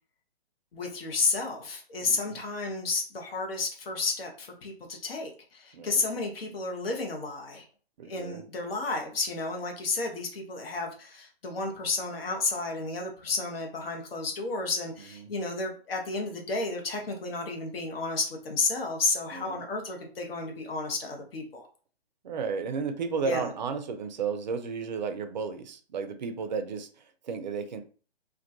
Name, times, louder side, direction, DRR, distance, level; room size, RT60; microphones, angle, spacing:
voice 1, 0.7-7.6 8.1-21.7 23.2-23.5, left 3 dB, 65° left, 2 dB, 0.8 m, -32 dB
voice 2, 2.0-2.4 5.7-6.1 8.0-8.4 15.1-15.3 19.3-19.7 22.2-27.8, right 5 dB, 45° right, 8 dB, 0.4 m, -33 dB
2.2 x 2.1 x 2.6 m, 0.39 s
figure-of-eight pair, 125°, 31 cm